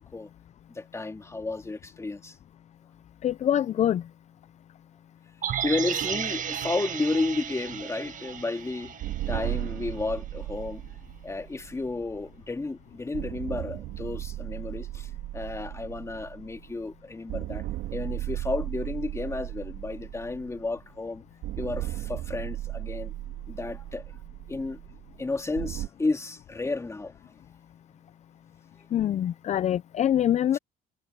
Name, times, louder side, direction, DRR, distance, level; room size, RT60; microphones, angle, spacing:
voice 1, 0.7-2.4 5.6-8.9 9.3-10.8 11.2-21.2 21.6-23.1 23.5-24.2 24.5-24.8 25.2-27.3 27.9-28.0 28.8-28.9 30.5-30.6, left 3 dB, 15° left, 2.4 m, -32 dB
voice 2, 3.2-4.0 28.9-30.6, left 10 dB, 45° left, 0.5 m, -24 dB
sound 1, 5.4-9.6 9.9-10.0, right 9 dB, 50° right, 1.8 m, -33 dB
sound 2, 9.0-12.6 13.1-16.9 17.3-20.9 21.4-25.9, right 15 dB, 85° right, 3.4 m, -36 dB
cardioid pair, 110°, 17 cm